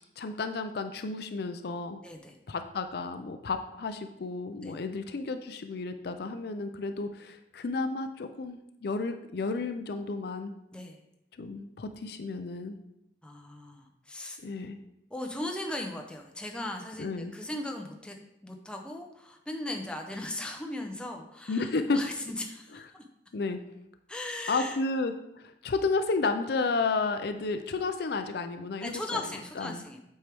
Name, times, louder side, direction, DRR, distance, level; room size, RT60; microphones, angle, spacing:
voice 1, 0.2-2.0 2.5-10.5 11.4-12.8 14.4-14.8 17.0-17.3 21.5-22.0 23.3-23.6 24.5-29.2 29.6-29.8, left 3 dB, 60° left, 8 dB, 0.4 m, -32 dB
voice 2, 2.0-2.4 4.6-4.8 10.7-11.0 13.2-14.4 15.1-18.2 18.4-23.0 24.1-24.8 28.8-30.0, left 1 dB, 5° left, 2 dB, 0.6 m, -38 dB
8.0 x 4.5 x 3.4 m, 0.84 s
head